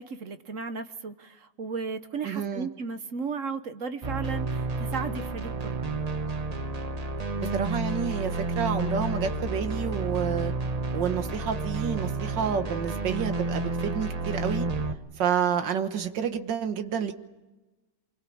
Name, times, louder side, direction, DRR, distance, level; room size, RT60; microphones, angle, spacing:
voice 1, 0.0-5.8, right 5 dB, 50° right, 10 dB, 1.3 m, -35 dB
voice 2, 2.2-2.7 7.4-10.5 10.9-14.7 15.2-17.1, right 7 dB, 85° right, 8 dB, 2.0 m, -29 dB
sound 1, 4.0-14.9, right 2 dB, 25° right, 1.0 m, -30 dB
25.5 x 22.5 x 8.6 m, 1.1 s
omnidirectional pair, 1.9 m